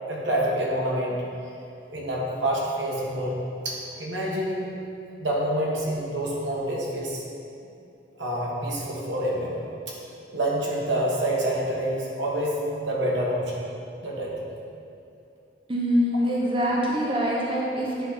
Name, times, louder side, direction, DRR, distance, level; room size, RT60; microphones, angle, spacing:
voice 1, 0.1-1.2 1.9-3.4 3.6-4.7 5.2-7.2 8.2-9.6 10.3-13.6 14.0-14.3, right 1 dB, 90° right, -4 dB, 1.5 m, -27 dB
voice 2, 15.7-18.1, equal, 30° right, -3 dB, 0.9 m, -24 dB
9.2 x 3.8 x 5.7 m, 2.6 s
head